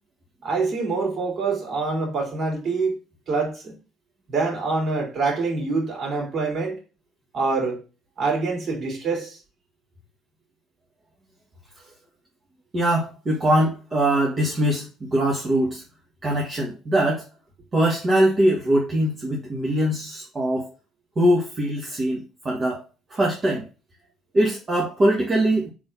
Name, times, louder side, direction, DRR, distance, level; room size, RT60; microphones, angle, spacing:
voice 1, 0.4-2.9 3.3-3.7 4.3-6.8 7.3-7.8 8.2-9.4, right 4 dB, 50° right, 3.3 m, -25 dB
voice 2, 12.7-15.8 16.2-17.2 17.7-20.7 21.2-22.8 23.1-23.6 24.3-25.7, right 1 dB, 35° right, 1.6 m, -22 dB
4.9 x 3.9 x 5.6 m
figure-of-eight pair, 50°, 0 cm